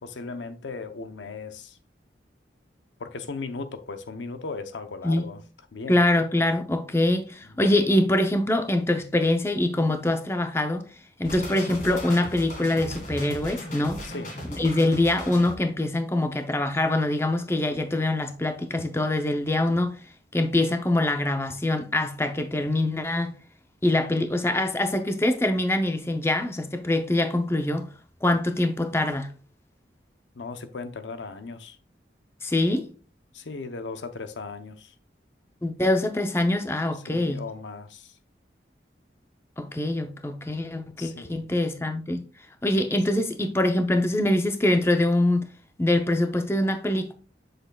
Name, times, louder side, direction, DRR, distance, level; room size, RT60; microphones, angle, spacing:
voice 1, 0.0-1.8 3.0-5.4 5.7-6.0 14.0-14.3 30.3-31.8 33.3-34.9 36.9-38.1 41.0-41.4 43.1-43.2, left 4 dB, 90° left, 0.7 m, -37 dB
voice 2, 5.9-10.8 11.2-14.0 14.5-20.0 20.3-23.3 23.8-27.9 28.2-29.3 32.4-32.9 35.6-37.4 39.6-42.2 42.6-45.5 45.8-47.1, left 1 dB, 15° left, 0.5 m, -24 dB
sound 1, 11.2-15.5, left 1 dB, 45° left, 1.9 m, -36 dB
7.7 x 6.4 x 2.3 m
head